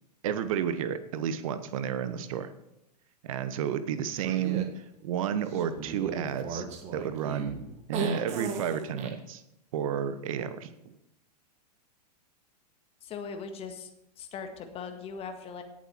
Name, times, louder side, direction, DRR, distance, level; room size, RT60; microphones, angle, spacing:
voice 1, 0.2-2.5 3.2-6.7 6.9-7.6 7.9-9.4 9.7-10.7, right 8 dB, 55° right, 12 dB, 1.2 m, -31 dB
sound 1, 4.2-4.7 5.5-9.1, right 5 dB, 30° right, 1.8 m, -36 dB
voice 2, 13.0-13.9 14.2-15.6, left 5 dB, 30° left, 6 dB, 1.7 m, -39 dB
18.0 x 7.4 x 4.5 m, 0.83 s
figure-of-eight pair, 95°, 21 cm